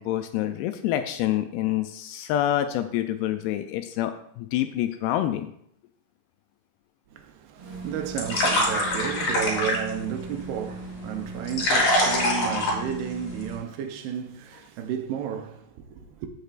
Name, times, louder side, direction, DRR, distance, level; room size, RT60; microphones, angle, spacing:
voice 1, 0.0-5.5, left 12 dB, 80° left, 2.3 m, -27 dB
voice 2, 7.1-16.3, right 9 dB, 80° right, 2.5 m, -33 dB
sound 1, 7.6-13.6, left 1 dB, 50° left, 2.9 m, -26 dB
14.5 x 6.6 x 2.4 m
omnidirectional pair, 4.8 m